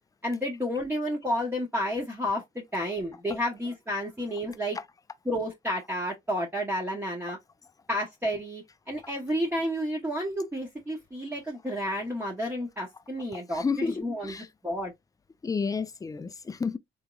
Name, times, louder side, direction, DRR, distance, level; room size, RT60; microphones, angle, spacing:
voice 1, 0.2-4.8 5.3-7.4 7.9-14.3 14.6-14.9, equal, 10° right, 0.9 m, -31 dB
voice 2, 13.5-14.5 15.4-16.8, left 5 dB, 20° left, 0.3 m, -31 dB
3.4 x 3.0 x 2.3 m
cardioid pair, 90°, 20 cm